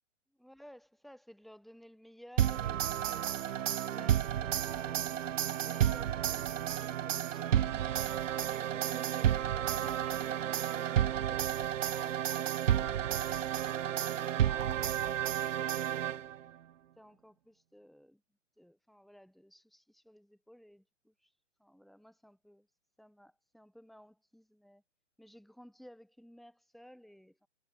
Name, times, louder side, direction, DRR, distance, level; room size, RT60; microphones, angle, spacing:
voice 1, 0.3-3.5 3.9-5.3 5.6-10.2 10.5-15.0 15.5-16.3 17.0-18.2 18.6-21.3 21.6-22.7 23.0-24.8 25.2-27.5, equal, ahead, 2.0 m, -56 dB
Egyptian Theme, 2.4-16.5, right 10 dB, 85° right, 0.5 m, -31 dB
hypercardioid pair, 125°, 37 cm